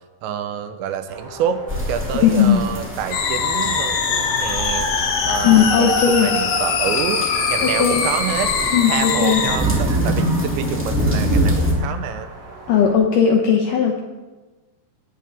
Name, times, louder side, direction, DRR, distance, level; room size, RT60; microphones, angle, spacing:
voice 1, 0.2-4.9 5.3-8.5 8.9-12.3, right 9 dB, 90° right, 9 dB, 3.2 m, -27 dB
sound 1, 1.1-13.0, right 2 dB, 70° right, 5.4 m, -39 dB
sound 2, 1.7-11.7, right 1 dB, 5° right, 1.2 m, -25 dB
voice 2, 2.2-2.6 5.4-6.4 7.8-8.1 8.7-9.5 12.7-14.0, left 7 dB, 80° left, 2 dB, 1.9 m, -17 dB
sound 3, 3.1-9.6, left 5 dB, 65° left, 2.5 m, -22 dB
18.5 x 10.0 x 3.6 m, 1.2 s
omnidirectional pair, 5.0 m